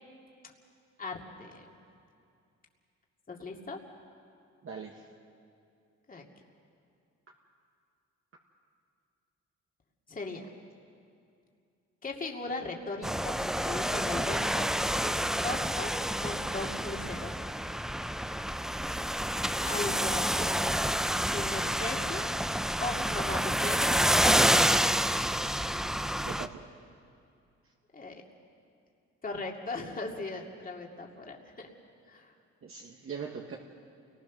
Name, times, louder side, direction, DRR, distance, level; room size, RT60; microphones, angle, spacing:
voice 1, 1.0-1.7 3.3-3.8 6.1-6.2 10.1-10.5 12.0-14.7 15.0-17.4 19.7-20.6 21.2-22.3 22.8-25.0 27.9-28.1 29.2-31.7 32.1-32.3, left 3 dB, 30° left, 0 dB, 2.5 m, -38 dB
voice 2, 4.6-5.0 26.2-26.6 32.6-33.6, right 6 dB, 45° right, 0 dB, 1.5 m, -40 dB
sound 1, 13.0-26.5, equal, ahead, 0.6 m, -28 dB
28.5 x 19.5 x 6.2 m, 2.5 s
cardioid pair, 90°, 30 cm